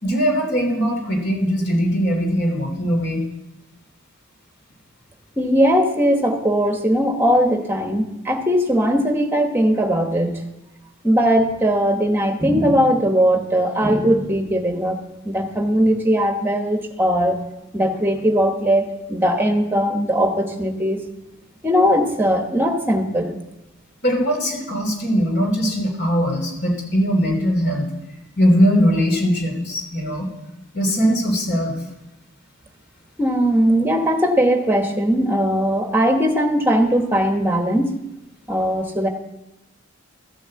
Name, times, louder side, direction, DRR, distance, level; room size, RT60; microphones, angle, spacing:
voice 1, 0.0-3.3 24.0-27.9 28.4-30.3 30.7-31.7, equal, 50° left, 1 dB, 3.2 m, -20 dB
voice 2, 5.4-10.4 11.0-15.0 15.2-17.4 17.7-21.0 21.6-23.4 33.2-38.0 38.5-39.1, equal, 10° right, 4 dB, 1.2 m, -19 dB
13.5 x 6.4 x 7.6 m, 0.94 s
head